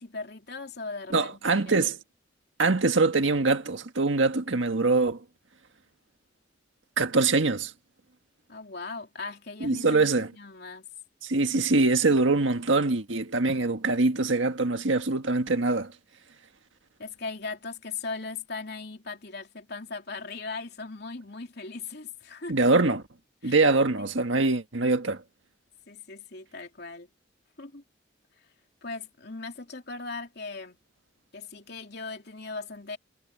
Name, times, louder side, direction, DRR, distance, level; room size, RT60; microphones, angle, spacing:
voice 1, 0.0-1.8 8.5-10.9 17.0-22.6 23.4-23.6 25.9-27.1 27.6-27.8 28.8-30.8 31.3-33.0, left 4 dB, 60° left, 3.2 m, -39 dB
voice 2, 1.1-2.0 2.6-5.2 7.0-7.7 9.6-10.3 11.2-15.9 22.5-23.0 23.4-25.2, right 3 dB, 80° right, 1.6 m, -23 dB
head